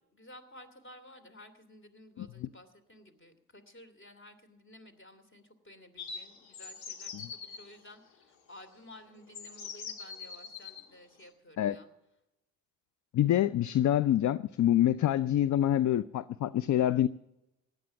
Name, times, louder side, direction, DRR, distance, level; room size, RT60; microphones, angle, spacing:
voice 1, 0.1-11.9 15.0-15.2, left 1 dB, 25° left, 10 dB, 2.9 m, -54 dB
sound 1, 6.0-7.6 8.7-8.8 9.3-10.8, left 6 dB, 75° left, 1.9 m, -43 dB
voice 2, 13.1-17.1, left 12 dB, 40° left, 18 dB, 0.5 m, -26 dB
17.0 x 11.0 x 7.1 m, 0.92 s
hypercardioid pair, 50°, 46 cm